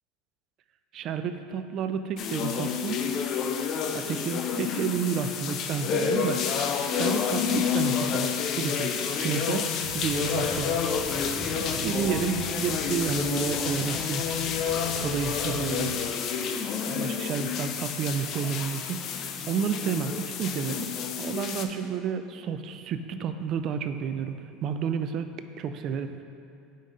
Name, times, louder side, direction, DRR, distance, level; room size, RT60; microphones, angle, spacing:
voice 1, 0.9-3.1 3.9-6.4 6.9-8.9 9.2-10.8 11.5-14.2 15.0-16.0 16.9-19.0 19.5-20.9 21.2-25.3 25.6-26.2, right 7 dB, 50° right, 9 dB, 0.3 m, -31 dB
sound 1, 2.2-21.6, left 7 dB, 50° left, 0.4 m, -29 dB
sound 2, 9.8-15.9, right 2 dB, 75° right, 0.9 m, -41 dB
5.1 x 3.8 x 5.4 m, 2.7 s
supercardioid pair, 110°, 0 cm